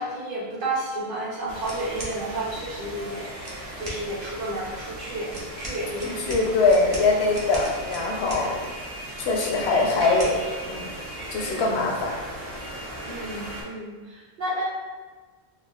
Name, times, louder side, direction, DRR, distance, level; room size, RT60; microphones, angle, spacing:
voice 1, 0.0-3.3 3.8-6.4 13.1-14.6, right 1 dB, 55° right, -6 dB, 0.9 m, -31 dB
sound 1, 1.5-13.6, right 1 dB, 90° right, 1.2 m, -37 dB
sound 2, 1.6-2.2 3.4-4.0 5.3-8.5 9.8-10.4, right 1 dB, 30° right, 0.4 m, -37 dB
voice 2, 6.0-8.7 9.2-10.4 10.6-10.9 11.3-12.1, left 3 dB, 75° left, 0 dB, 0.9 m, -23 dB
3.6 x 2.2 x 2.3 m, 1.3 s
omnidirectional pair, 1.1 m